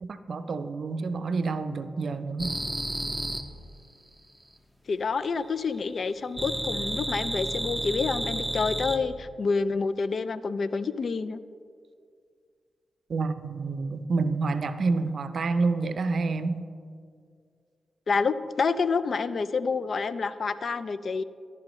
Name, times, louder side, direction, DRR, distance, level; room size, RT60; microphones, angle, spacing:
voice 1, 0.0-2.6 13.1-16.6, right 3 dB, 65° right, 10 dB, 0.5 m, -28 dB
sound 1, 2.4-3.4 6.3-9.0, right 1 dB, 5° right, 0.8 m, -31 dB
voice 2, 4.9-11.4 18.1-21.2, left 4 dB, 60° left, 15 dB, 0.3 m, -28 dB
14.0 x 5.7 x 3.1 m, 2.2 s
supercardioid pair, 40°, 0 cm